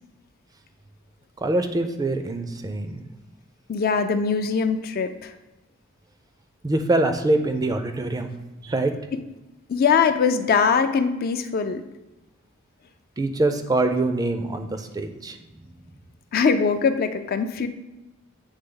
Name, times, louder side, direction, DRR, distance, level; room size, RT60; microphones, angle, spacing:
voice 1, 1.4-3.0 6.6-8.3 8.6-8.9 13.2-15.4, right 2 dB, 20° right, 7 dB, 0.4 m, -24 dB
voice 2, 3.7-5.3 9.1-9.2 9.7-11.8 16.3-17.7, left 5 dB, 45° left, 8 dB, 0.4 m, -22 dB
8.1 x 3.4 x 3.8 m, 1.0 s
head